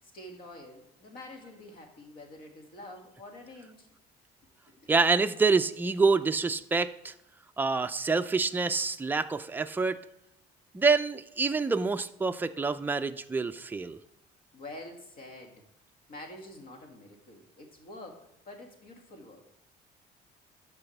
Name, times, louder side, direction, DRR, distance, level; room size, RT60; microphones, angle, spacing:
voice 1, 0.0-3.9 4.7-4.9 14.5-15.6 16.1-19.4, left 1 dB, 60° left, 2 dB, 2.1 m, -47 dB
voice 2, 4.9-7.1 7.6-10.0 10.7-14.0, right 4 dB, 10° right, 8 dB, 0.4 m, -27 dB
13.0 x 4.9 x 3.3 m, 0.82 s
cardioid pair, 110°, 17 cm